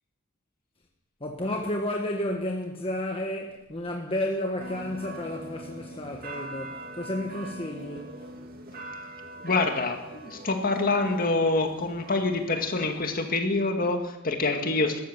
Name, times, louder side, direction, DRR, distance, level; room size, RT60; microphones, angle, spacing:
voice 1, 1.2-8.3, left 1 dB, 25° left, 1.4 m, -32 dB
sound 1, 4.6-13.3, right 2 dB, 45° right, 2.1 m, -42 dB
voice 2, 9.4-15.0, left 3 dB, 45° left, 2.0 m, -26 dB
14.0 x 13.5 x 7.4 m
head